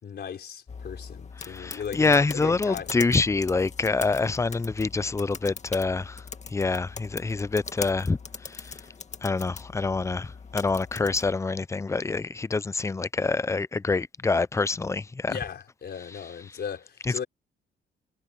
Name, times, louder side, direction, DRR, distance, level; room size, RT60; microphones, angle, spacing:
voice 1, 0.0-2.9 15.3-17.3, left 7 dB, 55° left, 4.2 m, -37 dB
sound 1, 0.7-11.4, left 5 dB, 35° left, 2.1 m, -41 dB
voice 2, 1.4-6.2 6.5-8.2 8.5-8.7 9.2-15.3, left 3 dB, 15° left, 0.5 m, -26 dB
cardioid pair, 90°, 20 cm